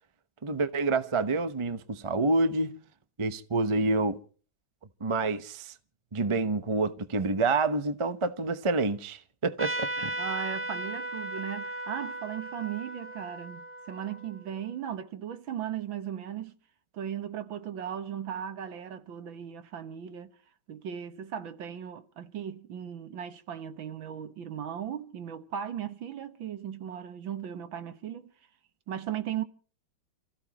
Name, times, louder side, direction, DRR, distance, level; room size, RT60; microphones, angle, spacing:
voice 1, 0.4-2.8 3.2-4.2 5.0-5.7 6.1-10.2, right 3 dB, 45° right, 0.3 m, -28 dB
Trumpet, 9.6-14.7, right 1 dB, 10° right, 1.0 m, -36 dB
voice 2, 10.2-16.6 16.9-20.4 20.7-28.3 28.9-29.4, right 9 dB, 70° right, 2.0 m, -37 dB
29.0 x 15.5 x 3.0 m
omnidirectional pair, 2.2 m